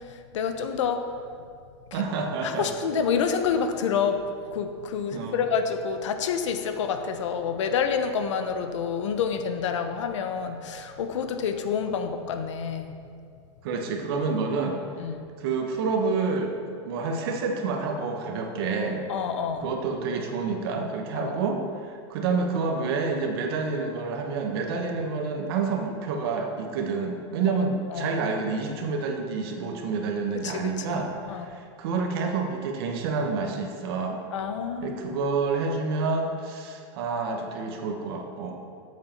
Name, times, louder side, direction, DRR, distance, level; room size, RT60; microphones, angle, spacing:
voice 1, 0.3-1.0 1.9-2.0 2.4-12.9 15.0-15.2 19.1-19.7 21.1-21.3 27.5-27.6 27.9-28.1 30.4-30.6 30.9-31.0 31.3-31.5 34.3-35.2, left 6 dB, 85° left, 7 dB, 0.9 m, -28 dB
voice 2, 1.9-2.7 5.1-5.4 13.6-14.8 15.4-19.0 19.6-34.2 34.8-38.6, right 4 dB, 55° right, 2 dB, 1.3 m, -28 dB
8.4 x 7.6 x 5.8 m, 2.3 s
supercardioid pair, 165°, 15 cm